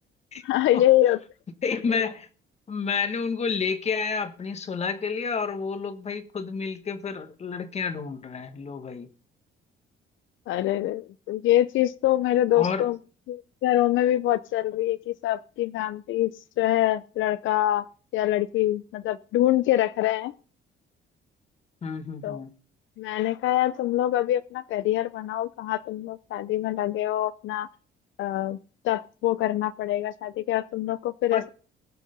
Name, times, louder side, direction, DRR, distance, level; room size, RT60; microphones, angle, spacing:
voice 1, 0.4-1.2 10.5-13.0 13.3-16.3 16.6-17.9 18.1-20.3 22.2-22.4 23.0-27.7 28.2-28.6 28.8-31.4, left 14 dB, 80° left, 0.5 m, -24 dB
voice 2, 1.6-2.3 2.7-9.1 12.5-12.9 21.8-22.5 31.3-31.5, left 5 dB, 35° left, 1.4 m, -30 dB
19.5 x 6.6 x 5.2 m
cardioid pair, 145°, 20 cm